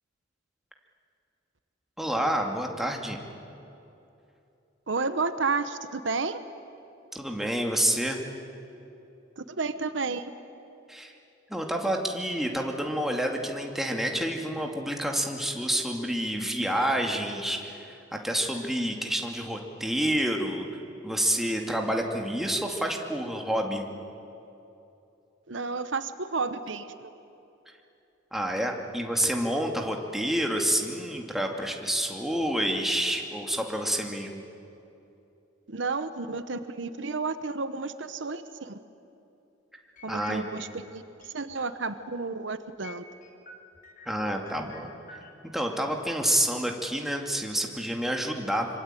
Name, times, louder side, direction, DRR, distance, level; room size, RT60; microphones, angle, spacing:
voice 1, 2.0-3.2 7.1-8.2 10.9-11.1 11.5-20.7 21.0-23.8 28.3-34.4 40.1-40.4 44.1-44.9 45.5-48.7, right 1 dB, ahead, 2 dB, 2.5 m, -28 dB
voice 2, 4.9-6.4 9.4-10.3 25.5-27.1 35.7-38.8 40.0-43.0, right 4 dB, 65° right, 11 dB, 1.0 m, -31 dB
sound 1, 40.0-40.9 41.2-41.9 42.2-42.3 42.8-45.3, left 4 dB, 45° left, 3.6 m, -48 dB
25.5 x 25.0 x 9.2 m, 2.8 s
head